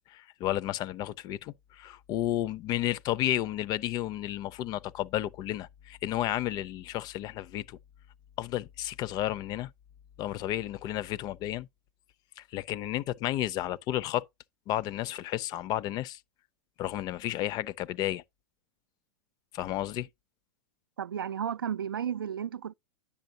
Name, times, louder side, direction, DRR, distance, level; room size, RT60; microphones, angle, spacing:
voice 1, 0.1-7.8 8.4-9.7 10.2-11.7 12.4-14.3 14.7-16.2 16.8-18.2 19.5-20.1, left 14 dB, 35° left, 0.5 m, -32 dB
voice 2, 21.0-22.7, right 8 dB, 80° right, 0.4 m, -33 dB
10.0 x 6.9 x 2.7 m
figure-of-eight pair, 95°, 12 cm